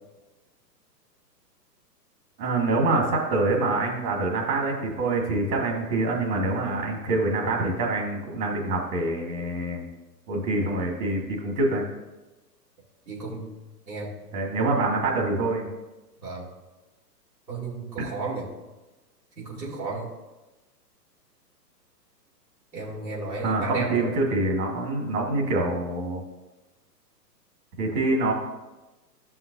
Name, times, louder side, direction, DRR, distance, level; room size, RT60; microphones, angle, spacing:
voice 1, 2.4-9.8 10.3-11.9 14.3-15.7 18.0-18.1 23.4-26.2 27.8-28.3, right 2 dB, 50° right, 0 dB, 2.1 m, -25 dB
voice 2, 13.1-13.5 13.9-14.1 16.2-16.4 17.5-18.5 19.4-20.1 22.7-24.2, right 3 dB, 85° right, -6 dB, 2.7 m, -33 dB
12.5 x 5.8 x 2.7 m, 1.1 s
hypercardioid pair, 120°, 50 cm